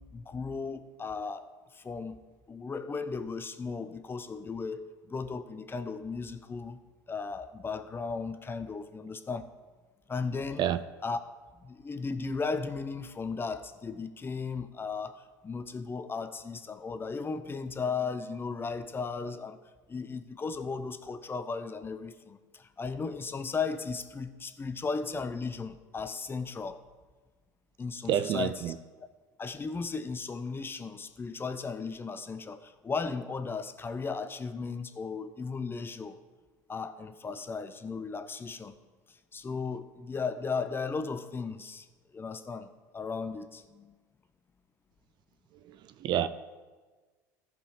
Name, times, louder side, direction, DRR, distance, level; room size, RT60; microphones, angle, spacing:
voice 1, 0.0-2.2 2.5-6.8 7.1-9.5 10.1-10.6 11.0-11.2 11.5-19.6 19.9-26.8 27.8-28.7 29.4-36.2 36.7-38.8 39.1-41.9 42.1-44.0, left 4 dB, 25° left, 0.8 m, -36 dB
voice 2, 28.1-28.7 45.7-45.8 46.0-46.3, right 10 dB, 50° right, 0.5 m, -28 dB
14.5 x 5.4 x 5.0 m
hypercardioid pair, 70°, 10 cm